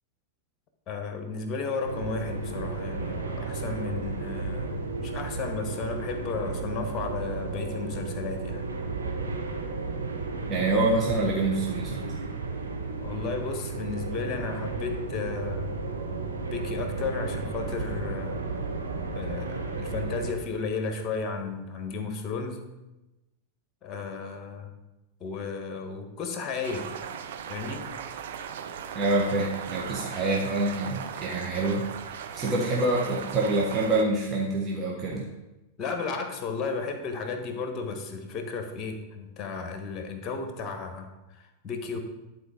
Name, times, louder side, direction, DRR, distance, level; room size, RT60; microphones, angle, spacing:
voice 1, 0.9-8.7 13.0-15.7 16.5-18.4 19.1-22.6 23.8-24.7 25.2-26.9 27.5-27.8 35.8-42.0, left 4 dB, 30° left, 5 dB, 1.4 m, -34 dB
sound 1, 1.8-20.3, right 3 dB, 75° right, 1.1 m, -33 dB
voice 2, 10.5-12.0 28.9-35.3, right 2 dB, 25° right, -3 dB, 1.4 m, -26 dB
sound 2, 26.6-34.0, right 8 dB, 60° right, 0.6 m, -38 dB
10.5 x 4.5 x 5.0 m, 1.0 s
figure-of-eight pair, 90°, 0 cm